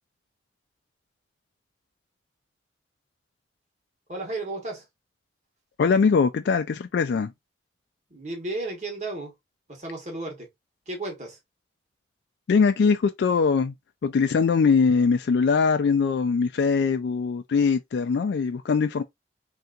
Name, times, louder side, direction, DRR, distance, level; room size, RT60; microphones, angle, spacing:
voice 1, 4.1-4.9 8.1-9.3 9.7-10.5 10.9-11.4, right 2 dB, 40° right, 1.3 m, -33 dB
voice 2, 5.8-7.3 12.5-13.7 14.0-19.0, left 5 dB, 70° left, 0.3 m, -22 dB
3.3 x 2.8 x 2.4 m
head